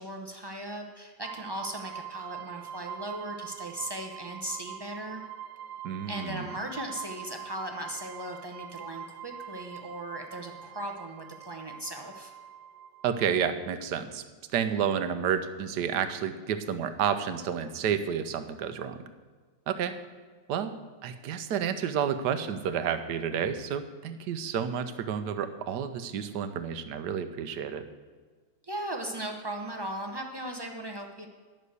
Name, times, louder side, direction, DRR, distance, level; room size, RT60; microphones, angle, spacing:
voice 1, 0.0-5.2 6.1-12.3 28.6-31.3, right 1 dB, 40° right, 2 dB, 0.3 m, -38 dB
sound 1, 1.2-13.7, right 9 dB, 85° right, 1.4 m, -44 dB
voice 2, 5.8-6.5 13.0-14.2 14.5-19.0 19.7-19.9 20.5-20.7 21.0-27.8, right 8 dB, 65° right, 9 dB, 1.3 m, -30 dB
11.0 x 6.4 x 8.1 m, 1.5 s
omnidirectional pair, 2.0 m